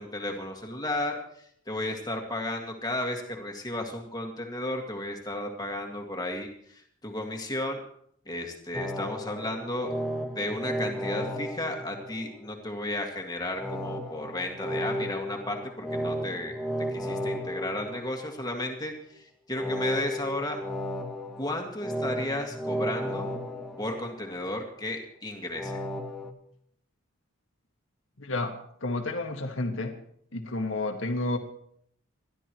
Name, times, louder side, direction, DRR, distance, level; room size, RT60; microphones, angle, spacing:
voice 1, 0.0-7.8 8.3-9.9 10.4-16.6 16.9-20.6 21.4-23.3 23.8-25.8, left 1 dB, 20° left, 2 dB, 2.0 m, -34 dB
sound 1, 8.7-12.6 13.5-18.6 19.5-24.6 25.6-26.3, equal, ahead, 1.2 m, -34 dB
voice 2, 28.2-29.9 30.3-31.4, left 2 dB, 70° left, 4 dB, 1.8 m, -31 dB
29.0 x 12.5 x 3.1 m, 0.69 s
head